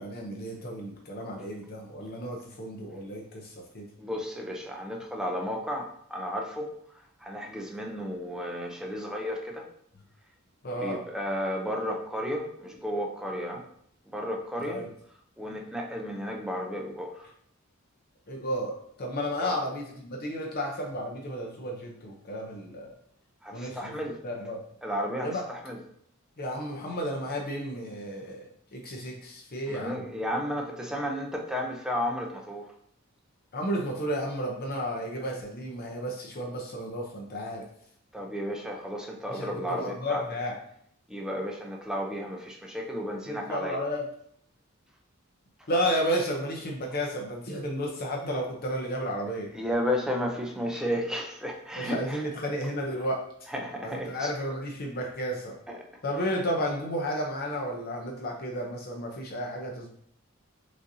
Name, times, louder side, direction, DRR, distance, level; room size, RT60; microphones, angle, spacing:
voice 1, 0.0-3.8 10.6-11.0 14.6-14.9 18.3-22.9 23.5-23.9 24.2-24.6 25.2-25.5 26.4-28.4 28.7-30.0 33.5-37.6 39.3-40.6 43.3-44.1 45.7-49.5 51.8-53.2 53.8-55.6 56.0-59.9, equal, 50° left, 0 dB, 0.7 m, -32 dB
voice 2, 4.0-6.7 7.2-9.7 10.7-13.6 14.1-14.8 15.4-17.3 19.4-19.6 23.4-24.2 24.8-25.8 29.7-32.7 38.1-40.2 41.1-43.8 49.5-52.2 53.5-54.3 55.7-55.9, equal, 5° right, 1 dB, 0.5 m, -33 dB
6.2 x 2.7 x 2.7 m, 0.68 s
head